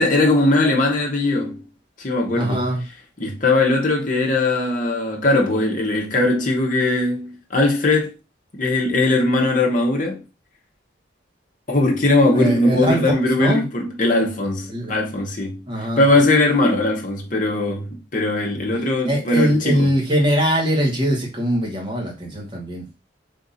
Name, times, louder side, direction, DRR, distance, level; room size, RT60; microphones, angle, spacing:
voice 1, 0.0-1.6 2.0-2.7 3.2-8.1 8.5-10.2 11.7-15.6 16.0-19.9, left 2 dB, 40° left, 0.9 m, -20 dB
voice 2, 2.3-2.8 12.3-13.6 14.7-14.9 15.7-16.1 19.0-22.8, equal, 25° right, 1.2 m, -21 dB
3.6 x 2.7 x 4.0 m
head